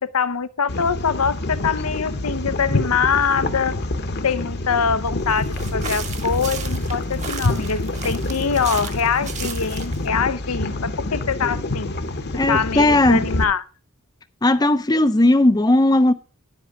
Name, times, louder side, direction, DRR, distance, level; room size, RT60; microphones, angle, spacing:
voice 1, 0.0-3.7 4.2-11.9 12.5-13.6, left 6 dB, 80° left, 0.7 m, -23 dB
sound 1, 0.7-13.4, left 2 dB, 50° left, 1.0 m, -27 dB
sound 2, 5.4-10.1, right 6 dB, 30° right, 1.1 m, -35 dB
voice 2, 12.3-13.3 14.4-16.1, left 1 dB, 20° left, 0.5 m, -16 dB
10.5 x 8.0 x 4.8 m
head